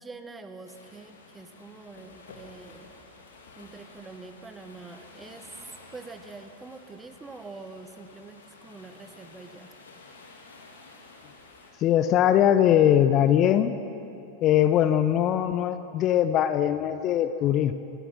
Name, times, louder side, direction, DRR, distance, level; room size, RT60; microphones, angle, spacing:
voice 1, 0.0-2.9 3.6-5.5 5.9-9.7, right 3 dB, 10° right, 8 dB, 1.5 m, -45 dB
sound 1, 0.6-11.7, left 3 dB, 65° left, 3.7 m, -51 dB
voice 2, 11.8-13.8 14.4-17.7, left 10 dB, 35° left, 12 dB, 0.8 m, -21 dB
27.0 x 19.5 x 5.8 m, 2.9 s
figure-of-eight pair, 90°, 0 cm